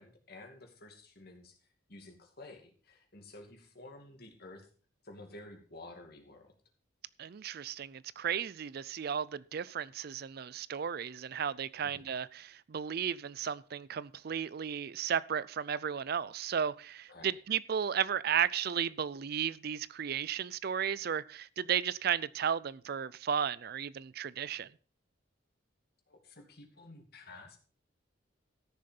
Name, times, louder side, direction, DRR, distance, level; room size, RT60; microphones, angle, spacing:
voice 1, 0.0-1.6 1.9-4.7 5.0-6.5 11.8-12.1 17.1-17.4 26.1-27.6, left 2 dB, 55° left, 2.5 m, -52 dB
voice 2, 7.2-24.7, right 8 dB, 55° right, 0.4 m, -34 dB
14.0 x 6.7 x 5.3 m
head